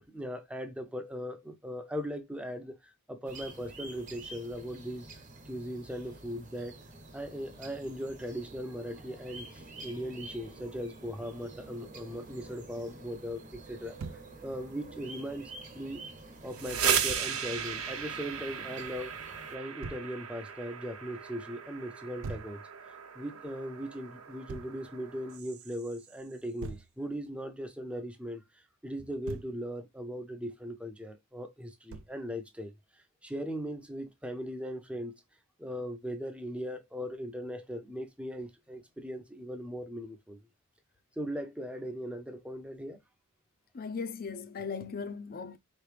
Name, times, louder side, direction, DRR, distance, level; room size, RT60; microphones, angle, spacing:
voice 1, 0.1-5.1 5.5-6.8 7.1-14.0 14.4-16.0 16.4-19.1 19.5-22.6 23.1-28.4 28.8-32.7 33.2-35.2 35.6-40.4 41.2-43.0, equal, 5° right, 0.6 m, -39 dB
sound 1, 3.2-19.6, right 2 dB, 35° right, 1.1 m, -49 dB
Thump thud, 14.0-14.3 17.1-17.3 19.8-20.1 22.2-22.6 24.5-24.8 26.6-26.9 29.0-29.6 31.9-32.2, right 4 dB, 65° right, 0.4 m, -42 dB
sound 2, 16.4-26.1, right 7 dB, 85° right, 0.9 m, -36 dB
voice 2, 43.7-45.6, left 5 dB, 45° left, 0.5 m, -38 dB
4.5 x 3.1 x 3.3 m
head